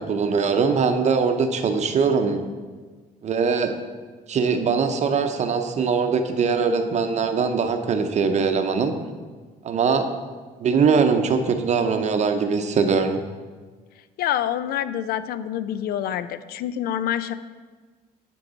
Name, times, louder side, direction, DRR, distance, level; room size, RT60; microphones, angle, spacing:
voice 1, 0.0-2.4 3.2-3.7 4.3-8.9 9.6-10.1 10.6-13.2, right 5 dB, 45° right, 7 dB, 0.7 m, -21 dB
voice 2, 14.2-17.3, left 10 dB, 65° left, 14 dB, 0.4 m, -26 dB
10.0 x 4.6 x 4.0 m, 1.4 s
cardioid pair, 110°, 17 cm